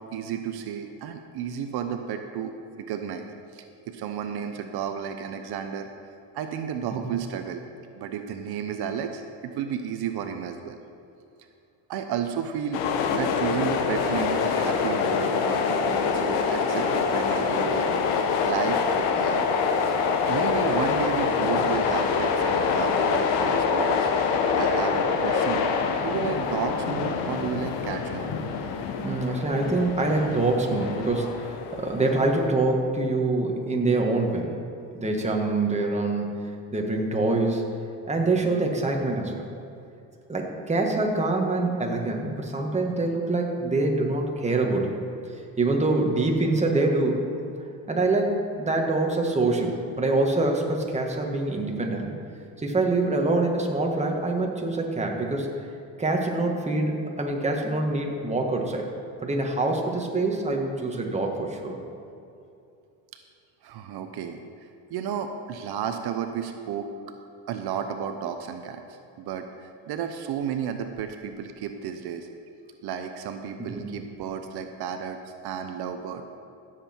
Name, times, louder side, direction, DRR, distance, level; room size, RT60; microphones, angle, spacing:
voice 1, 0.1-3.3 3.5-5.9 6.3-7.6 8.0-10.8 11.9-12.8 13.1-17.9 18.4-19.5 19.9-20.0 20.3-24.1 24.6-28.3 63.6-66.9 67.5-68.8 69.2-72.3 72.8-75.2 75.4-76.2, right 8 dB, 60° right, 7 dB, 0.8 m, -32 dB
sound 1, 12.7-32.5, left 5 dB, 75° left, 1.1 m, -25 dB
voice 2, 29.0-34.5 34.9-36.4 36.7-37.6 38.1-39.4 40.3-45.0 45.6-47.2 47.9-52.1 52.6-55.5 56.0-58.9 59.2-61.8 73.6-73.9, right 2 dB, 15° right, 1 dB, 1.8 m, -25 dB
16.0 x 7.6 x 4.5 m, 2.6 s
cardioid pair, 105°, 44 cm